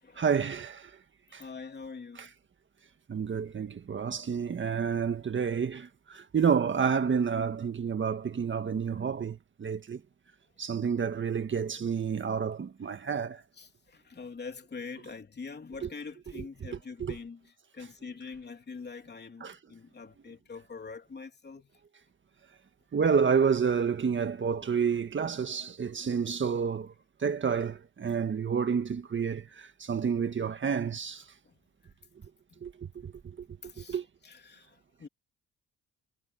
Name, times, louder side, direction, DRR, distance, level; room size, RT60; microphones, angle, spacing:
voice 1, 0.2-0.9 1.3-1.4 2.1-2.3 3.1-10.0 10.6-13.4 15.8-15.9 16.3-17.1 19.4-19.6 22.9-26.9 27.2-31.2 32.6-33.1 33.8-34.0, right 6 dB, 40° right, 1.7 m, -29 dB
voice 2, 1.4-2.3 13.6-17.4 17.7-21.7 31.4-31.5 32.5-32.6 33.6-34.0 34.2-35.1, left 4 dB, 35° left, 3.2 m, -44 dB
cardioid pair, 90°, 30 cm